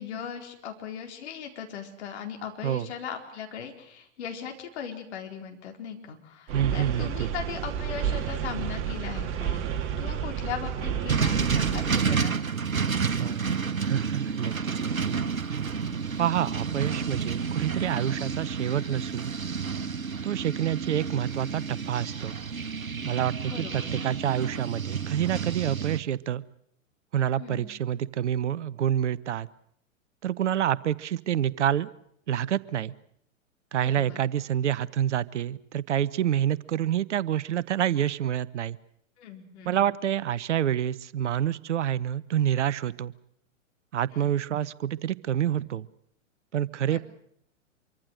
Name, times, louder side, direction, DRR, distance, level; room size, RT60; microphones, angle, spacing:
voice 1, 0.0-12.4 23.4-24.0 27.4-27.7 33.8-34.2 39.2-39.7 44.1-44.3 46.8-47.0, left 8 dB, 55° left, 3 dB, 4.4 m, -38 dB
sound 1, 6.5-11.9, right 8 dB, 30° right, 2.2 m, -31 dB
voice 2, 6.5-7.3 13.2-15.2 16.2-19.3 20.2-22.4 23.0-26.4 27.1-29.5 30.2-31.9 32.3-32.9 33.7-38.8 39.7-43.1 43.9-45.9 46.5-47.0, right 10 dB, 60° right, 18 dB, 0.9 m, -28 dB
sound 2, 11.1-26.0, right 6 dB, 80° right, 1.3 m, -30 dB
25.0 x 24.0 x 6.5 m, 0.72 s
figure-of-eight pair, 110°, 40 cm